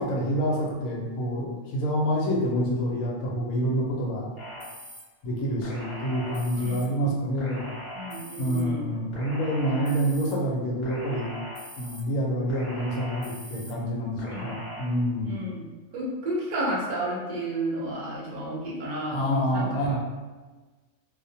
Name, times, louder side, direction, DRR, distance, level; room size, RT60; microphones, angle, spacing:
voice 1, 0.0-4.3 5.2-7.7 8.4-11.3 11.8-15.5 19.1-20.0, equal, 85° left, -2 dB, 1.0 m, -27 dB
sound 1, 4.4-5.0 5.6-6.8 7.4-8.6 9.1-10.3 10.8-12.0 12.5-13.7 14.2-14.8, equal, 50° left, 1.0 m, -40 dB
voice 2, 6.6-7.1 7.9-9.0 9.6-9.9 14.3-14.5 15.3-15.6 15.9-20.0, right 1 dB, 45° right, -5 dB, 0.5 m, -32 dB
2.4 x 2.0 x 2.7 m, 1.3 s
omnidirectional pair, 1.4 m